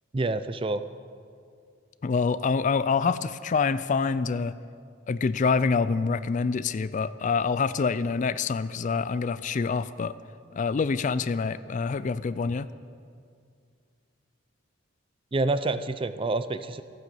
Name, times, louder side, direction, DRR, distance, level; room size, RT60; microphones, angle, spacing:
voice 1, 0.1-0.8 15.3-16.8, right 2 dB, 25° right, 12 dB, 0.4 m, -27 dB
voice 2, 2.0-4.5 5.1-10.2 10.5-12.7, left 5 dB, 40° left, 15 dB, 0.3 m, -26 dB
14.5 x 9.2 x 7.5 m, 2.3 s
head